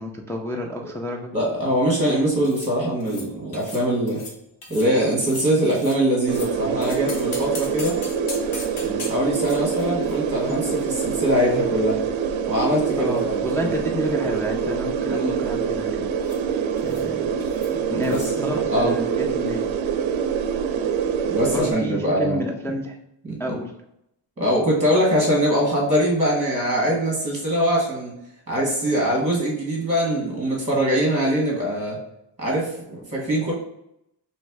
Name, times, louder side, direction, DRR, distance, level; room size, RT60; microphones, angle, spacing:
voice 1, 0.0-1.3 13.0-16.1 16.8-17.3 17.9-19.7 21.5-23.0 23.4-23.7, equal, 5° left, -1 dB, 0.5 m, -30 dB
voice 2, 1.3-4.2 4.7-8.0 8.7-12.0 12.5-13.8 15.1-15.4 17.7-18.9 21.3-22.4 23.2-23.6 24.4-28.1 28.5-32.0 32.4-33.5, equal, 15° right, -3 dB, 1.5 m, -23 dB
sound 1, 2.4-2.7 3.0-3.3 3.5-4.3 4.6-4.9 5.1-6.5 6.8-11.5 11.8-11.9 12.6-13.5 13.8-14.1 14.3-14.8 16.2-16.4 16.8-17.1 17.4-17.7 18.0-18.3, left 3 dB, 90° left, 1.2 m, -40 dB
sound 2, 6.3-21.7, right 7 dB, 75° right, 0.6 m, -25 dB
3.2 x 3.1 x 4.7 m, 0.81 s
cardioid pair, 110°, 47 cm